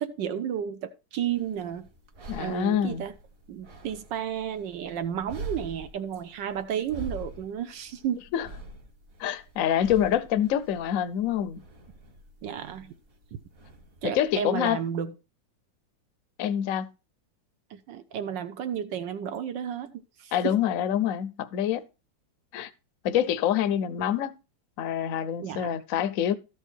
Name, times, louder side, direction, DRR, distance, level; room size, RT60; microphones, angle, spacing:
voice 1, 0.0-1.9 2.4-3.1 3.5-8.2 12.4-12.9 14.0-15.1 17.7-19.9 20.2-20.5 25.4-25.8, right 9 dB, 75° right, 1.3 m, -32 dB
sound 1, 1.3-14.3, right 2 dB, 50° right, 1.8 m, -45 dB
voice 2, 2.3-3.0 8.3-8.5 9.2-11.6 14.0-14.8 16.4-16.9 20.3-21.8 22.5-22.7 23.0-24.4 24.8-26.3, left 10 dB, 65° left, 0.8 m, -26 dB
13.0 x 5.5 x 4.4 m
omnidirectional pair, 2.1 m